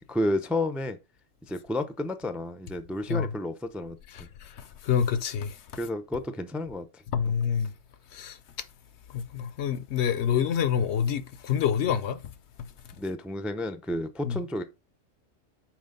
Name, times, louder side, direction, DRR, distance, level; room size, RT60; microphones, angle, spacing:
voice 1, 0.1-1.0 1.4-4.3 5.7-7.0 13.0-14.6, left 1 dB, ahead, 0.4 m, -31 dB
voice 2, 4.1-5.6 7.1-7.7 8.1-8.4 9.1-12.2 14.2-14.4, left 8 dB, 65° left, 0.9 m, -27 dB
6.1 x 4.6 x 5.2 m
omnidirectional pair, 1.3 m